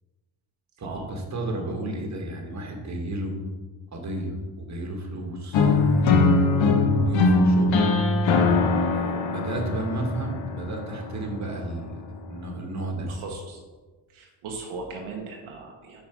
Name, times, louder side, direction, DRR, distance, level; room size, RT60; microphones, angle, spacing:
voice 1, 0.8-3.4 3.9-5.8 6.9-7.7 8.9-13.1, right 1 dB, 35° right, 1 dB, 1.5 m, -33 dB
sound 1, 5.5-11.5, left 3 dB, 65° left, 0.9 m, -21 dB
voice 2, 13.1-13.6 14.1-16.0, right 3 dB, 70° right, 1 dB, 1.0 m, -38 dB
5.7 x 4.3 x 4.5 m, 1.3 s
supercardioid pair, 70°, 50 cm